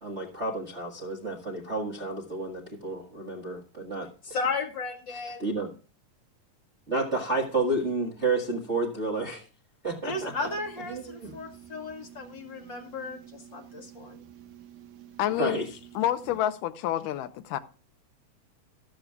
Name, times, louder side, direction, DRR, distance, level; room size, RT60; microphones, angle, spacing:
voice 1, 0.0-4.1 5.1-5.7 6.9-9.5 9.8-10.5 10.9-11.3 15.3-15.7, right 2 dB, 35° right, 1.1 m, -31 dB
voice 2, 4.2-5.4 10.0-14.2, left 3 dB, 50° left, 1.5 m, -35 dB
sound 1, 10.1-16.4, right 11 dB, 75° right, 2.4 m, -50 dB
voice 3, 15.2-15.6 16.0-17.6, left 12 dB, 80° left, 2.3 m, -28 dB
14.0 x 13.0 x 2.3 m
omnidirectional pair, 3.8 m